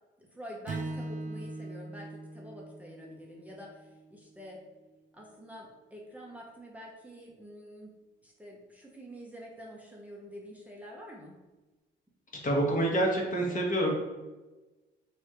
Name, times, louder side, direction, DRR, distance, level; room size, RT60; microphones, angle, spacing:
voice 1, 0.2-4.6 5.1-7.9 8.2-11.4, equal, 5° right, -3 dB, 0.7 m, -47 dB
Strum, 0.7-5.0, right 2 dB, 40° right, 0.4 m, -41 dB
voice 2, 12.4-13.9, right 1 dB, 40° left, -1 dB, 1.1 m, -27 dB
3.4 x 2.4 x 4.2 m, 1.2 s
cardioid pair, 90°, 20 cm